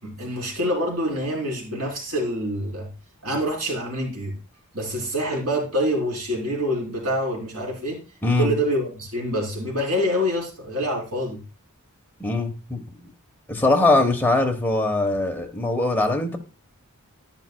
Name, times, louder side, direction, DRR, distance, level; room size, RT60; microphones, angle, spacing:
voice 1, 0.0-2.9 3.2-4.4 4.7-8.0 8.4-11.4 14.0-14.1, equal, 75° right, -1 dB, 4.1 m, -26 dB
voice 2, 8.2-8.5 12.2-13.1 13.5-16.4, left 2 dB, 10° left, 2 dB, 1.1 m, -22 dB
11.0 x 9.9 x 2.3 m, 0.31 s
head